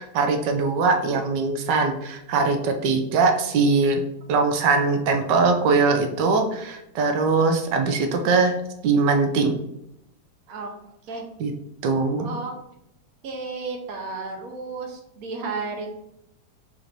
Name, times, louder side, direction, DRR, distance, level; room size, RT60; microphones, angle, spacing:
voice 1, 0.0-4.0 4.3-8.5 8.8-9.6 11.4-11.5 11.8-12.3, right 4 dB, 90° right, 5 dB, 1.3 m, -21 dB
voice 2, 12.2-12.6 13.2-16.0, right 3 dB, 60° right, 2 dB, 1.2 m, -33 dB
4.2 x 2.6 x 4.4 m, 0.82 s
omnidirectional pair, 1.8 m